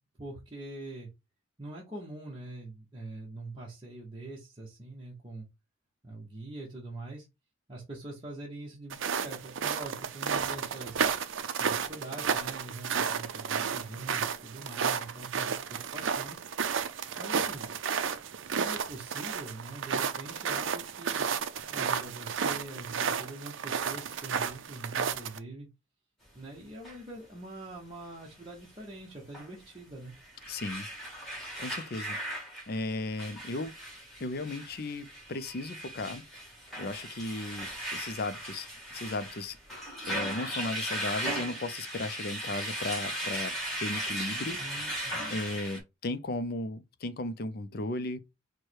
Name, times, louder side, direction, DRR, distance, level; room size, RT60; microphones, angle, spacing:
voice 1, 0.2-1.1 1.6-5.5 6.0-7.3 7.7-11.0 11.6-16.4 17.2-17.7 18.5-21.3 21.7-25.7 26.3-30.1 44.6-45.1, right 2 dB, 25° right, 0.9 m, -43 dB
sound 1, 8.9-25.4, right 6 dB, 70° right, 0.5 m, -32 dB
sound 2, 26.8-27.0 29.3-29.5 30.1-45.8, equal, ahead, 1.8 m, -37 dB
voice 2, 30.5-30.9 31.6-32.2 32.7-33.8 34.2-36.2 36.8-39.6 40.1-43.5 43.8-44.6 45.3-48.2, left 2 dB, 50° left, 0.5 m, -35 dB
4.6 x 2.2 x 4.5 m
head